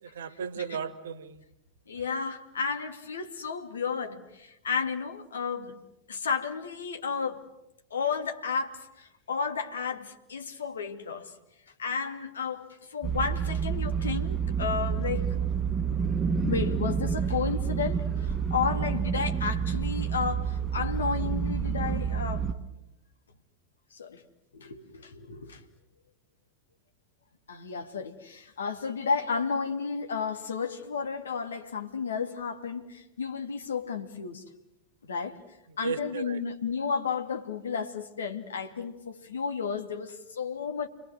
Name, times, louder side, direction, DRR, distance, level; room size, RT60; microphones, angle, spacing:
voice 1, 0.0-1.4 35.8-36.4, right 7 dB, 65° right, 1.4 m, -35 dB
voice 2, 1.9-5.8 6.1-7.5 7.9-11.4 11.8-15.4 16.4-22.5 23.9-24.2 24.5-25.6 27.5-34.4 35.0-35.4 35.8-40.9, left 5 dB, 70° left, 2.4 m, -32 dB
sound 1, 13.0-22.5, right 7 dB, 15° right, 1.5 m, -29 dB
30.0 x 22.0 x 7.8 m
figure-of-eight pair, 90°, 0 cm